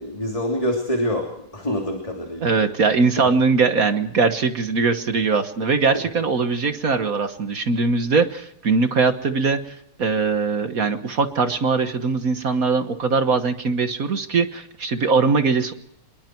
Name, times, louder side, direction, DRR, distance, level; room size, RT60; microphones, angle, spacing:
voice 1, 0.0-2.5 3.2-3.3 5.9-6.0, equal, 15° left, 1 dB, 2.9 m, -26 dB
voice 2, 2.4-15.7, right 4 dB, 45° right, 9 dB, 1.5 m, -21 dB
26.5 x 21.5 x 4.6 m, 0.78 s
omnidirectional pair, 2.4 m